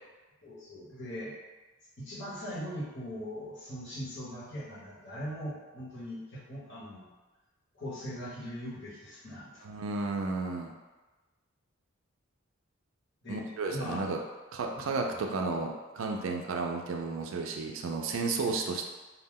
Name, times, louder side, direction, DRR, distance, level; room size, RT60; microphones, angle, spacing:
voice 1, 0.4-1.3 2.0-7.1 7.7-9.5 13.2-14.0 14.7-15.2 18.5-18.7, equal, 60° left, -8 dB, 1.0 m, -40 dB
voice 2, 9.6-10.7 13.3-14.2 14.5-18.9, right 3 dB, 70° right, 2 dB, 0.3 m, -33 dB
2.2 x 2.1 x 3.5 m, 1.2 s
head